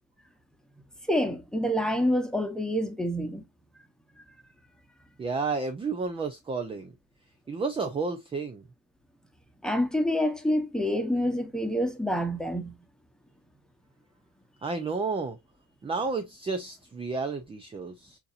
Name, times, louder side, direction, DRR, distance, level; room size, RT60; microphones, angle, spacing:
voice 1, 1.1-3.4 9.6-12.8, equal, ahead, 0.8 m, -27 dB
voice 2, 5.2-6.9 7.5-8.6 14.6-15.4 15.8-18.2, right 4 dB, 15° right, 0.3 m, -31 dB
7.0 x 2.7 x 2.4 m
cardioid pair, 140°, 46 cm